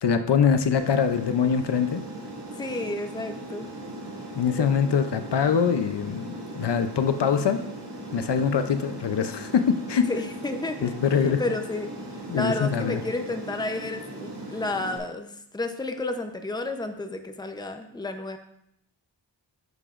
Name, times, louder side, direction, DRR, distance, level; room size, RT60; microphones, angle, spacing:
voice 1, 0.0-2.0 4.3-7.6 8.1-10.1 10.8-11.4 12.3-13.0, left 7 dB, 65° left, 9 dB, 0.6 m, -23 dB
Aircraft, 0.8-15.0, right 1 dB, 65° right, 2.0 m, -39 dB
voice 2, 2.6-3.7 10.1-10.9 11.2-11.9 12.3-15.3 15.5-18.4, left 2 dB, 10° left, 6 dB, 0.6 m, -31 dB
11.0 x 6.8 x 2.5 m, 0.76 s
wide cardioid pair, 95°, 45 cm